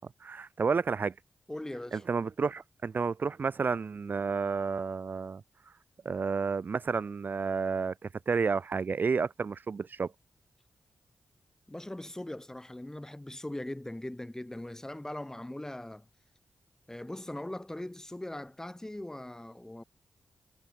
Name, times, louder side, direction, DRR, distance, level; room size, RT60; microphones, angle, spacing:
voice 1, 0.2-1.1 1.9-5.4 6.0-10.1, right 5 dB, 60° right, 2.4 m, -31 dB
voice 2, 1.5-2.0 11.7-16.0 16.9-19.8, left 1 dB, 15° left, 2.8 m, -40 dB
cardioid pair, 50°, 4 cm